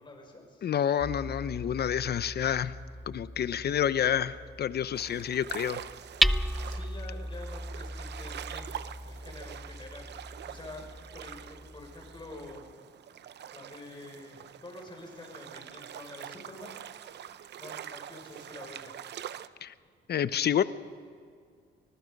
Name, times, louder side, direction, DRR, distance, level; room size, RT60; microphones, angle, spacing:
voice 1, 0.0-0.7 6.6-8.8 9.0-10.8 11.1-12.7 13.5-16.8 17.6-19.0, left 2 dB, 25° left, 2 dB, 6.0 m, -47 dB
voice 2, 0.6-2.8 3.1-5.8 19.6-19.7 20.1-20.6, left 9 dB, 55° left, 15 dB, 0.8 m, -28 dB
Hammer, 1.0-12.7, equal, ahead, 0.5 m, -36 dB
sound 1, 4.9-19.5, right 10 dB, 60° right, 0.7 m, -45 dB
25.0 x 20.0 x 5.4 m, 2.1 s
cardioid pair, 90°, 20 cm